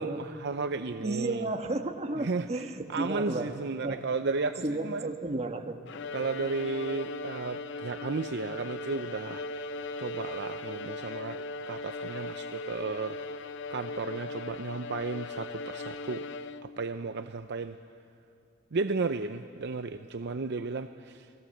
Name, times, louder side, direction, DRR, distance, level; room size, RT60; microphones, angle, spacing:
voice 1, 0.0-1.5 2.2-5.1 6.1-9.5 10.0-11.4 11.7-13.2 13.7-16.2 16.6-17.8 18.7-21.3, right 4 dB, 60° right, 9 dB, 0.6 m, -34 dB
voice 2, 1.0-3.6 3.8-4.0 4.6-5.8, right 2 dB, 30° right, 5 dB, 1.4 m, -33 dB
Bowed string instrument, 5.9-16.9, left 2 dB, 60° left, 0.6 m, -38 dB
29.0 x 19.0 x 7.8 m, 2.5 s
head